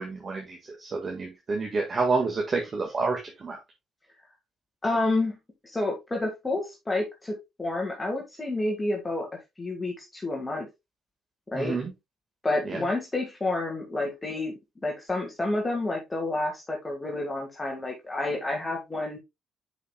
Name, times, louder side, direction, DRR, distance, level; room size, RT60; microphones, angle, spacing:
voice 1, 0.0-3.6 11.5-11.9 12.6-12.8, right 4 dB, 40° right, 1 dB, 1.6 m, -29 dB
voice 2, 4.8-5.4 5.6-9.3 9.6-10.7 11.5-11.8 12.4-14.5 14.8-19.2, left 2 dB, 20° left, 0 dB, 1.8 m, -29 dB
10.0 x 5.0 x 2.2 m, 0.21 s
cardioid pair, 90°, 0 cm